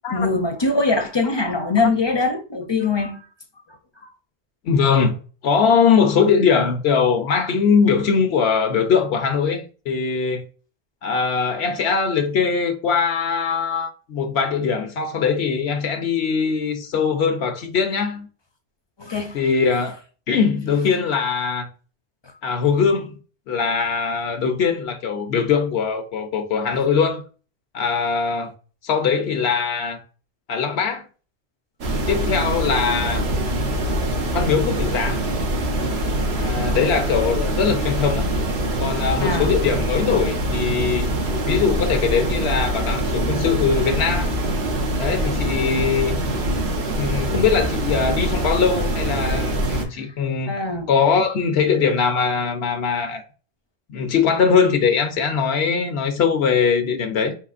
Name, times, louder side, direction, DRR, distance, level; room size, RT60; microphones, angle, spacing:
voice 1, 0.1-3.3 19.0-19.4 22.2-22.3 39.2-39.5 50.0-50.1 50.5-50.9, left 3 dB, 35° left, 0.5 m, -22 dB
voice 2, 4.6-5.2 5.4-10.5 11.0-18.3 19.3-20.0 20.3-21.7 22.4-23.2 23.5-27.2 27.7-28.5 28.8-30.0 30.5-31.0 32.1-33.2 34.3-35.2 36.3-38.3 38.8-41.1 41.5-44.3 45.0-46.2 46.9-50.5 50.9-53.2 53.9-57.3, left 6 dB, 90° left, 1.0 m, -21 dB
sound 1, 31.8-49.9, right 1 dB, 90° right, 1.2 m, -24 dB
4.8 x 3.8 x 2.4 m
omnidirectional pair, 1.1 m